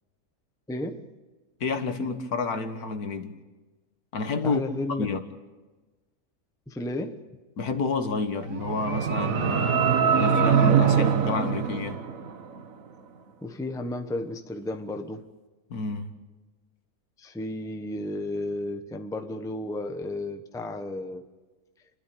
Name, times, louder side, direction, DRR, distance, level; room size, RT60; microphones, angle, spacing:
voice 1, 0.7-1.2 4.4-5.1 6.7-7.2 10.6-11.0 13.4-15.2 17.2-21.3, left 1 dB, 5° left, 0.9 m, -33 dB
voice 2, 1.6-3.4 4.1-4.6 5.0-5.2 7.6-12.0 15.7-16.1, left 4 dB, 70° left, 1.9 m, -29 dB
sound 1, 8.4-12.6, right 7 dB, 60° right, 1.5 m, -23 dB
29.5 x 12.0 x 8.7 m
omnidirectional pair, 1.7 m